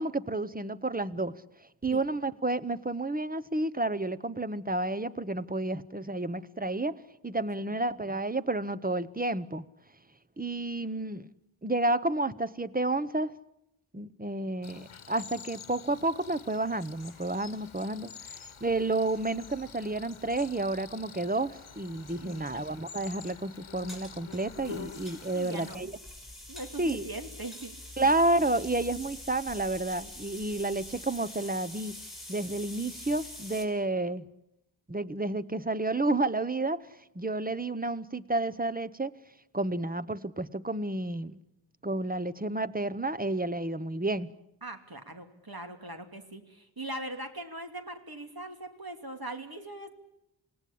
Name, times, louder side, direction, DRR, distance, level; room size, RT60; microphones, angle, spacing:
voice 1, 0.0-1.3 1.8-9.6 10.4-11.3 11.6-13.3 13.9-25.9 26.8-27.0 28.0-31.9 32.3-34.2 34.9-36.8 37.1-39.1 39.5-41.4 41.8-44.3, right 2 dB, 20° right, 15 dB, 0.9 m, -30 dB
Cricket, 14.6-25.8, left 6 dB, 80° left, 1.0 m, -48 dB
sound 1, 16.8-33.6, left 1 dB, ahead, 5.9 m, -47 dB
voice 2, 22.2-22.6 25.3-25.9 26.5-27.7 44.6-49.9, right 1 dB, 50° right, 6 dB, 2.8 m, -41 dB
27.5 x 18.0 x 8.6 m, 0.86 s
wide cardioid pair, 50°, 48 cm